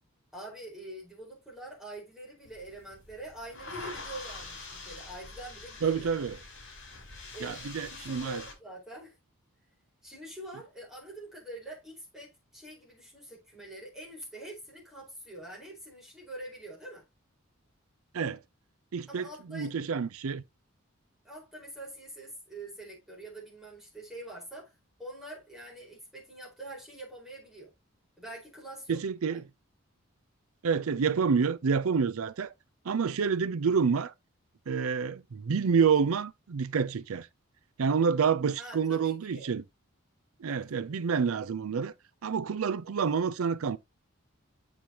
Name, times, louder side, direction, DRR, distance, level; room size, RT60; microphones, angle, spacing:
voice 1, 0.3-6.1 7.3-9.2 10.0-17.0 19.1-19.8 21.2-24.7 25.0-27.7 28.2-29.0 29.3-29.4 38.6-39.5 40.5-40.8, right 1 dB, ahead, 4.7 m, -45 dB
sound 1, 2.5-8.5, left 3 dB, 55° left, 4.3 m, -45 dB
voice 2, 5.8-6.3 7.4-8.4 18.1-18.4 18.9-20.4 28.9-29.4 30.6-32.5 32.9-34.1 34.7-37.3 37.8-39.6 40.4-41.9 42.2-43.8, right 6 dB, 80° right, 0.5 m, -28 dB
8.6 x 6.0 x 2.9 m
head